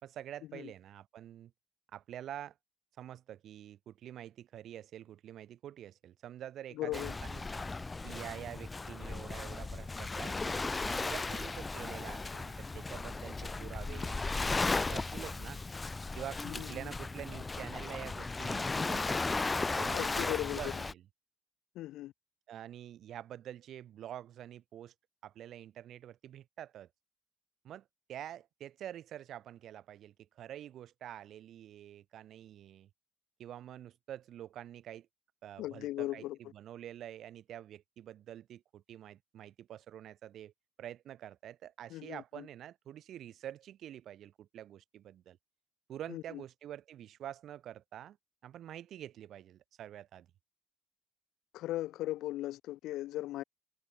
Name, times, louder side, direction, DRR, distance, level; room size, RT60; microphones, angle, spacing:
voice 1, 0.0-1.5 1.9-2.6 3.0-7.7 8.0-15.6 16.1-19.4 19.8-21.0 22.5-24.9 25.2-26.9 27.6-32.9 33.4-35.1 35.4-40.5 40.8-45.4 45.9-48.2 48.4-50.3, right 11 dB, 60° right, 4.8 m, -47 dB
voice 2, 6.8-7.1 16.4-16.7 19.9-20.8 21.8-22.1 35.6-36.4 41.9-42.5 46.1-46.4 51.5-53.4, left 15 dB, 85° left, 0.4 m, -38 dB
Waves surf, 6.9-20.9, left 3 dB, 15° left, 0.7 m, -36 dB
cardioid pair, 140°, 0 cm